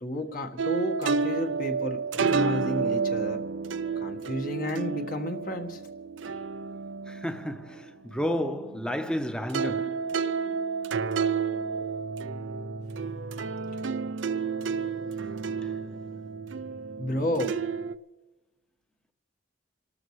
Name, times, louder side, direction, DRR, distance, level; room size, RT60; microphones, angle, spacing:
voice 1, 0.0-3.4 4.0-5.8 10.5-10.6 17.0-17.6, left 1 dB, 45° left, 1.5 m, -32 dB
sound 1, 0.6-9.2 9.5-17.9, right 5 dB, 85° right, 0.5 m, -31 dB
voice 2, 7.1-10.0, equal, 5° left, 0.9 m, -31 dB
28.0 x 13.0 x 3.2 m
head